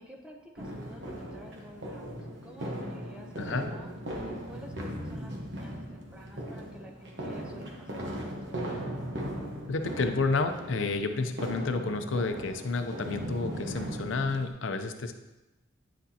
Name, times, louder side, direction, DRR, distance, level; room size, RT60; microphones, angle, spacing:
voice 1, 0.0-2.1 2.4-8.3, equal, 5° right, 0 dB, 0.7 m, -50 dB
sound 1, 0.6-14.5, equal, 60° right, 1.1 m, -38 dB
voice 2, 9.7-15.1, left 3 dB, 75° left, 7 dB, 0.6 m, -30 dB
9.2 x 6.1 x 2.8 m, 1.0 s
head